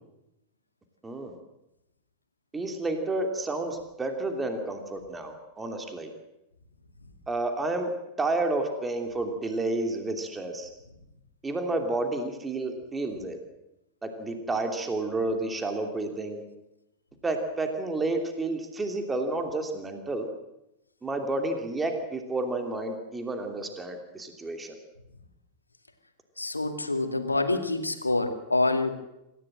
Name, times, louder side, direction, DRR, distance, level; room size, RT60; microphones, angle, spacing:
voice 1, 1.0-1.4 2.5-6.1 7.3-7.9 8.2-10.7 11.4-13.4 14.0-16.4 17.2-20.3 21.0-24.8, right 2 dB, 15° right, 5 dB, 3.0 m, -30 dB
voice 2, 26.4-28.9, left 2 dB, 80° left, 7 dB, 2.4 m, -26 dB
26.5 x 15.5 x 7.7 m, 0.89 s
figure-of-eight pair, 90°, 0 cm